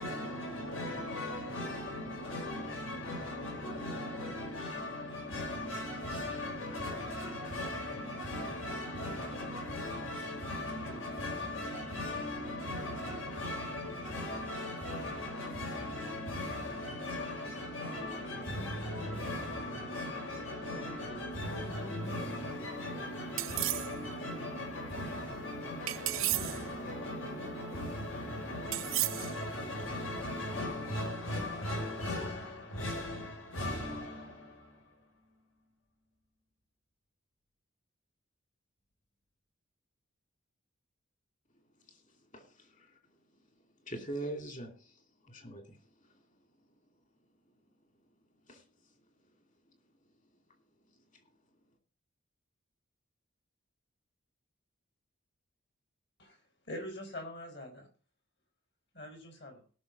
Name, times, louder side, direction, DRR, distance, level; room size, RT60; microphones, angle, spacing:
voice 1, 0.0-35.1, left 1 dB, 80° left, 5.5 m, -38 dB
sound 1, 23.4-23.9 25.9-26.6 28.7-29.4, right 18 dB, 75° right, 0.5 m, -33 dB
voice 2, 41.8-43.2 43.6-46.2 47.7-47.8 48.5-48.7 49.2-49.3 49.7-49.8 51.1-51.2, right 1 dB, 40° left, 2.7 m, -45 dB
voice 3, 56.7-57.9 58.9-59.6, left 1 dB, 60° left, 5.0 m, -43 dB
18.5 x 6.2 x 5.3 m
head